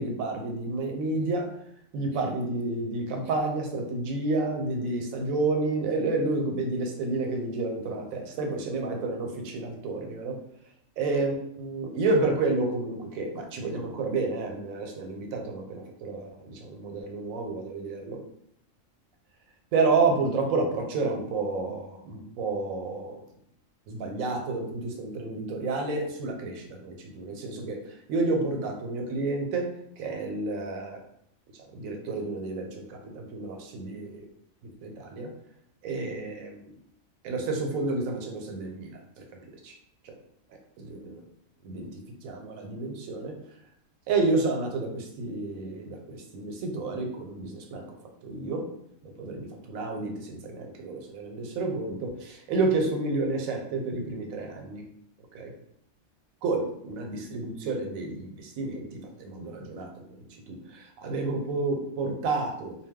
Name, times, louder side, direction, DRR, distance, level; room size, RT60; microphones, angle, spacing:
voice 1, 0.0-1.5 1.9-10.4 11.0-18.2 19.7-23.2 23.9-27.8 28.1-29.7 30.0-31.0 31.7-34.2 34.8-35.3 35.8-36.6 37.2-39.0 39.6-39.7 40.8-41.2 41.6-41.9 42.2-43.3 44.1-47.9 48.2-48.7 49.2-54.8 55.3-55.5 56.4-59.9 60.2-62.7, right 3 dB, 85° right, 2 dB, 1.0 m, -30 dB
2.3 x 2.2 x 3.5 m, 0.71 s
omnidirectional pair, 1.4 m